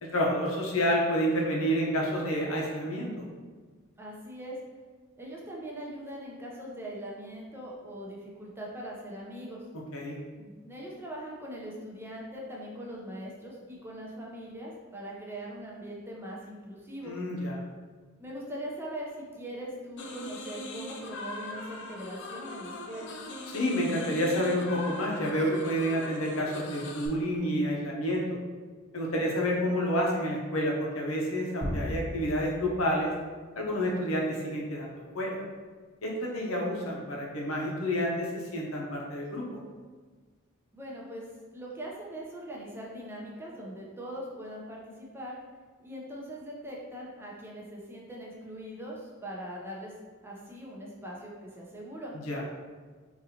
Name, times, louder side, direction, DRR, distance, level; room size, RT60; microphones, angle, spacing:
voice 1, 0.0-3.2 9.9-10.2 17.0-17.6 23.5-28.3 28.9-33.1 33.6-35.4 36.0-39.6 52.2-52.4, equal, 85° left, -2 dB, 0.8 m, -29 dB
voice 2, 4.0-4.6 5.2-9.7 10.4-17.1 18.2-23.1 40.7-41.3 41.5-45.4 45.8-49.9 50.2-52.1, right 1 dB, 10° right, -4 dB, 0.6 m, -41 dB
sound 1, 20.0-27.1, left 2 dB, 60° left, 0.5 m, -41 dB
sound 2, 31.6-34.0, equal, 60° right, 1.2 m, -37 dB
3.9 x 2.6 x 2.8 m, 1.4 s
head